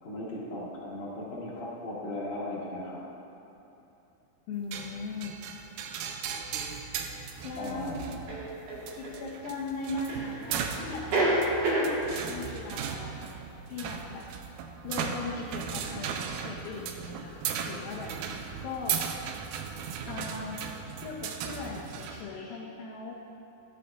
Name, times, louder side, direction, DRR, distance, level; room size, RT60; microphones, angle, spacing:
voice 1, 0.0-3.0 7.6-8.3, left 1 dB, 50° left, -8 dB, 3.1 m, -37 dB
voice 2, 4.5-5.3 7.4-8.0 8.9-11.4 11.8-13.4 13.7-14.3 14.8-19.2 20.0-20.6 21.0-23.1, left 3 dB, 80° left, -4 dB, 2.4 m, -39 dB
sound 1, 4.7-22.2, right 7 dB, 80° right, 2.0 m, -37 dB
sound 2, 6.5-6.6 8.3-9.2 10.1-10.6 10.9-11.9, right 2 dB, 60° right, 2.7 m, -28 dB
13.0 x 10.5 x 2.4 m, 2.8 s
omnidirectional pair, 4.2 m